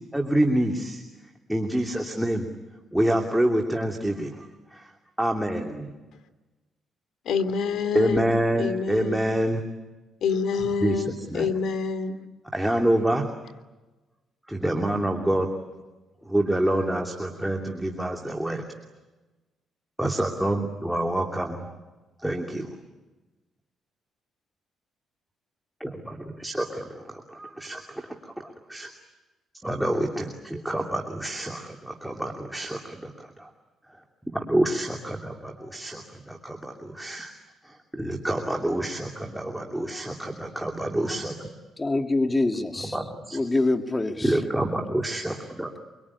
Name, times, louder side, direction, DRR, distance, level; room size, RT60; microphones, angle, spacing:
voice 1, 0.1-1.0 1.5-2.4 2.9-4.9 5.2-5.9 7.9-9.6 10.8-11.0 11.3-11.5 12.5-13.2 14.5-15.5 16.3-18.6 20.0-21.7 22.2-22.7 25.8-28.9 29.6-33.5 34.3-37.3 37.6-41.5 42.8-43.4 44.2-45.8, right 1 dB, 5° right, 2 dB, 2.8 m, -27 dB
voice 2, 7.2-8.3 8.6-9.2 10.2-12.2, left 5 dB, 70° left, 9 dB, 3.0 m, -27 dB
voice 3, 41.8-43.0 43.3-44.4, left 2 dB, 20° left, 5 dB, 2.7 m, -25 dB
25.0 x 24.0 x 9.8 m, 1.1 s
cardioid pair, 90°, 0 cm